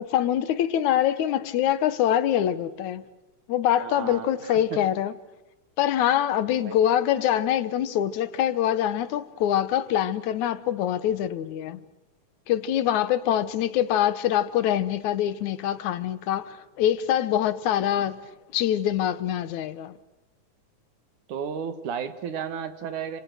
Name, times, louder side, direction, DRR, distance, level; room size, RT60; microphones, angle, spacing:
voice 1, 0.0-3.0 3.5-5.1 5.8-11.8 12.5-18.3 18.5-19.9, left 11 dB, 80° left, 2.4 m, -24 dB
voice 2, 3.8-4.8 6.5-6.8 17.9-18.0 21.3-23.2, right 7 dB, 85° right, 3.2 m, -34 dB
29.5 x 27.0 x 6.3 m
omnidirectional pair, 3.4 m